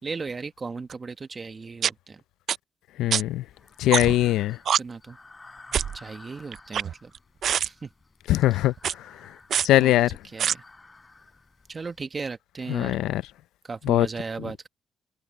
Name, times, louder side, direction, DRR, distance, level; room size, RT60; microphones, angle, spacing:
voice 1, 0.0-2.2 4.1-4.3 4.8-5.2 5.9-7.1 7.6-7.9 9.8-10.6 11.7-12.9 13.6-14.7, right 4 dB, 35° right, 1.5 m, -36 dB
sound 1, 0.9-1.0 1.8-1.9 2.5-2.6 3.1-3.2 3.9-4.2 4.7-4.8 5.7-6.0 6.5-7.2 7.4-7.7 8.8-8.9 9.5-9.7 10.4-10.5, right 8 dB, 60° right, 0.4 m, -24 dB
voice 2, 3.0-3.4 3.8-4.6 8.3-8.7 9.6-10.1 12.7-13.2 13.9-14.1, left 14 dB, 85° left, 0.5 m, -21 dB
Breathing, 3.0-12.0, left 3 dB, 20° left, 4.5 m, -52 dB
cardioid pair, 90°, 0 cm